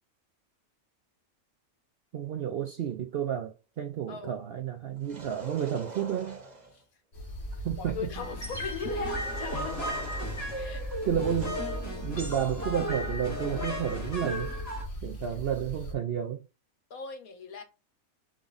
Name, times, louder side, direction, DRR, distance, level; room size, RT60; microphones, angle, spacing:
voice 1, 2.1-6.4 7.6-8.0 11.0-11.6 12.0-14.5 15.0-16.4, right 9 dB, 65° right, 0.6 m, -31 dB
sound 1, 5.0-6.8 9.0-11.7, right 3 dB, 35° right, 1.0 m, -45 dB
sound 2, 7.1-15.9, equal, 50° left, 1.4 m, -39 dB
voice 2, 7.7-9.8 10.5-10.9 16.9-17.6, left 6 dB, 80° left, 1.4 m, -39 dB
sound 3, 8.1-14.8, equal, 25° left, 1.6 m, -35 dB
5.1 x 2.4 x 3.9 m
omnidirectional pair, 1.5 m